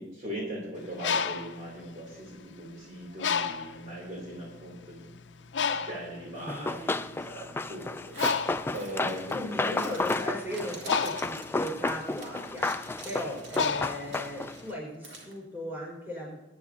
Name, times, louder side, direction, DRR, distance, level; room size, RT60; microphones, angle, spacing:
voice 1, 0.0-9.9, right 1 dB, 45° right, -4 dB, 3.1 m, -40 dB
Bird, 0.8-2.7 3.2-3.9 4.6-4.7 5.0-14.7, left 6 dB, 80° left, 0.6 m, -32 dB
Run, 6.5-14.6, left 2 dB, 15° left, 0.3 m, -32 dB
Zipper (clothing), 8.1-15.3, right 3 dB, 75° right, 2.2 m, -47 dB
voice 2, 9.3-16.4, equal, 10° right, -4 dB, 5.4 m, -37 dB
22.5 x 10.0 x 2.8 m, 1.0 s
head